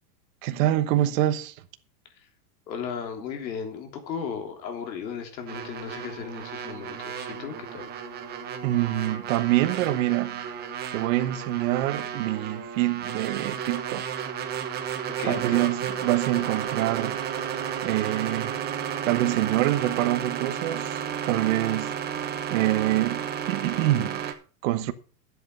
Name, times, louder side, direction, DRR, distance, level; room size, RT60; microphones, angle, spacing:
voice 1, 0.4-1.6 8.6-10.4 10.9-14.3 15.2-17.2 17.8-18.6 19.0-24.9, right 15 dB, 50° right, 1.1 m, -26 dB
voice 2, 2.7-7.9 15.2-15.7, left 7 dB, 90° left, 3.5 m, -35 dB
sound 1, 5.5-24.3, right 8 dB, 20° right, 1.1 m, -33 dB
11.5 x 8.1 x 5.5 m
supercardioid pair, 165°, 49 cm